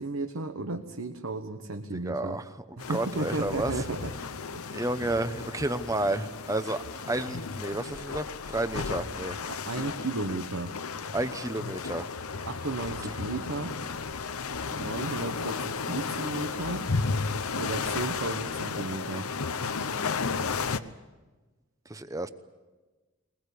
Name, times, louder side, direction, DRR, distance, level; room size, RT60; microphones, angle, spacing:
voice 1, 0.0-2.4 2.8-4.1 4.5-4.7 9.5-10.7 12.5-13.8 14.7-16.9 17.6-19.3, right 2 dB, 75° right, 5 dB, 1.2 m, -34 dB
voice 2, 1.9-3.8 4.7-9.4 11.1-12.1 21.9-22.3, right 2 dB, 15° right, 11 dB, 0.9 m, -31 dB
sound 1, 2.8-20.8, left 4 dB, 85° left, 0.9 m, -34 dB
21.5 x 21.0 x 8.4 m, 1.3 s
head